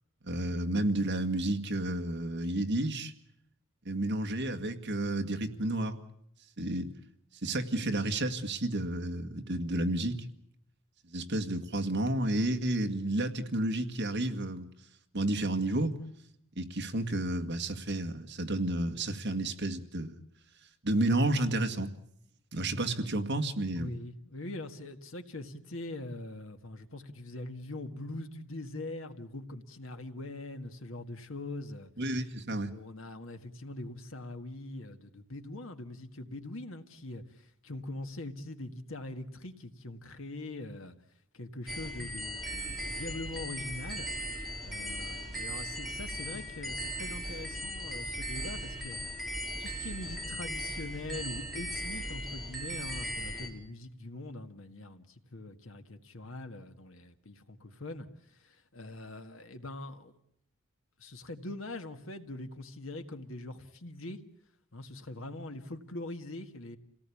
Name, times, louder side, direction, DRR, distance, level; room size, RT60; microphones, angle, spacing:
voice 1, 0.2-3.1 3.9-6.0 6.6-6.9 7.4-10.2 11.1-14.7 15.1-16.0 16.6-20.2 20.8-21.9 22.5-23.9 32.0-32.7, right 1 dB, 55° right, 1.9 m, -31 dB
voice 2, 23.8-31.9 32.5-41.0 41.3-44.1 44.4-49.0 49.3-60.1 61.0-64.2 64.7-66.8, left 2 dB, 65° left, 1.8 m, -42 dB
sound 1, 41.7-53.5, equal, ahead, 3.9 m, -38 dB
28.0 x 18.0 x 8.6 m
head